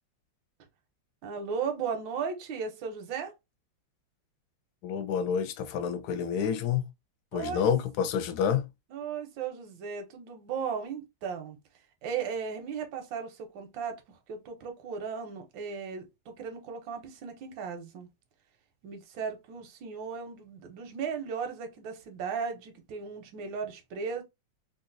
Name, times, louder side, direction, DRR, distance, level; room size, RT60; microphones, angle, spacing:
voice 1, 1.2-3.3 7.3-7.6 8.9-11.6 12.0-18.1 18.8-24.2, right 6 dB, 80° right, 1.5 m, -36 dB
voice 2, 4.8-6.8 7.3-8.7, left 7 dB, 70° left, 1.0 m, -28 dB
3.9 x 2.4 x 2.5 m
omnidirectional pair, 2.0 m